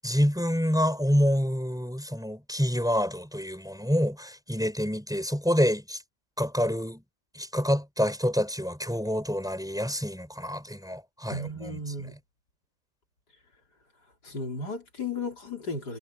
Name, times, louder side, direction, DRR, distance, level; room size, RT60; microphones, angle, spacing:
voice 1, 0.0-6.0 6.4-7.0 7.3-11.8, equal, ahead, 6.2 m, -27 dB
voice 2, 11.3-12.2 14.2-16.0, left 2 dB, 85° left, 4.6 m, -34 dB
omnidirectional pair, 1.7 m